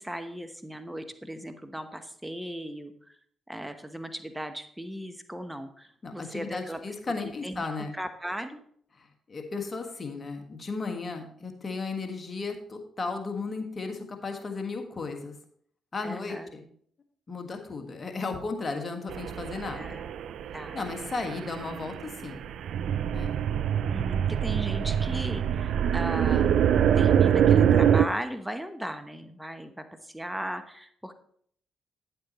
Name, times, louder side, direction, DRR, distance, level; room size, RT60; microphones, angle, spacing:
voice 1, 0.0-2.9 3.5-6.8 7.2-7.7 7.9-8.6 16.0-16.5 19.7-20.8 23.9-26.5 26.9-31.2, equal, 5° right, 8 dB, 1.0 m, -37 dB
voice 2, 6.0-7.9 9.0-15.3 15.9-16.6 17.3-20.0 20.7-22.4 23.1-23.3, left 4 dB, 40° left, 4 dB, 1.6 m, -35 dB
sound 1, 19.1-28.0, right 9 dB, 70° right, 0.3 m, -25 dB
10.5 x 7.8 x 3.0 m, 0.63 s
supercardioid pair, 50°, 0 cm